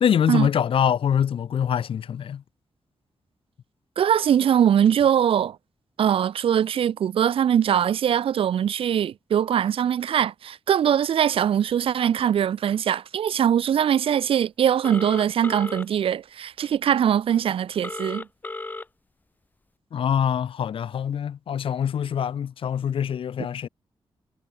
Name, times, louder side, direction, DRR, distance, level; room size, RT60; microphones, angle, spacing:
voice 1, 0.0-2.4 19.9-23.7, left 8 dB, 75° left, 1.5 m, -24 dB
voice 2, 4.0-5.6 6.0-18.2, right 9 dB, 90° right, 0.8 m, -22 dB
Telephone, 14.8-15.9 17.8-18.8, left 3 dB, 20° left, 7.7 m, -34 dB
wide cardioid pair, 180°, 9 cm